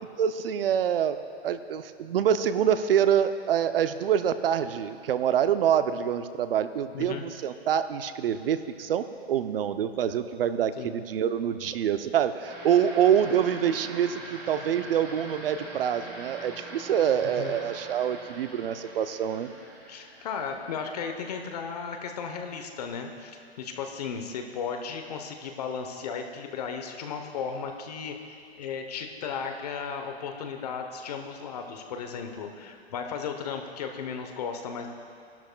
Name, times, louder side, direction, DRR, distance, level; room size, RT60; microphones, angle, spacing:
voice 1, 0.2-1.2 1.4-19.5, right 9 dB, 60° right, 11 dB, 0.6 m, -26 dB
voice 2, 6.9-7.3 10.8-10.9 17.2-17.6 19.9-34.9, left 6 dB, 40° left, 5 dB, 0.8 m, -35 dB
sound 1, 12.4-21.5, right 2 dB, 15° right, 1.1 m, -43 dB
17.0 x 12.0 x 2.3 m, 2.3 s
hypercardioid pair, 165°, 32 cm